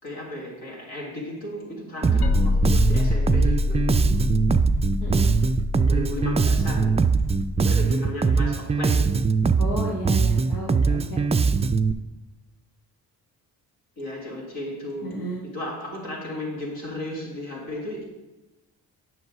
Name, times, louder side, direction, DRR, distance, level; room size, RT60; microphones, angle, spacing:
voice 1, 0.0-4.2 5.9-7.0 7.6-9.2 14.0-18.1, left 1 dB, 70° left, -3 dB, 2.6 m, -35 dB
Bass guitar, 2.0-11.9, right 5 dB, 15° right, 0.3 m, -21 dB
sound 1, 2.2-7.7, left 3 dB, 50° left, 0.8 m, -26 dB
voice 2, 5.0-5.3 9.6-11.2 15.0-15.4, equal, 90° left, -4 dB, 1.4 m, -32 dB
7.9 x 5.7 x 4.7 m, 1.0 s
hypercardioid pair, 40°, 49 cm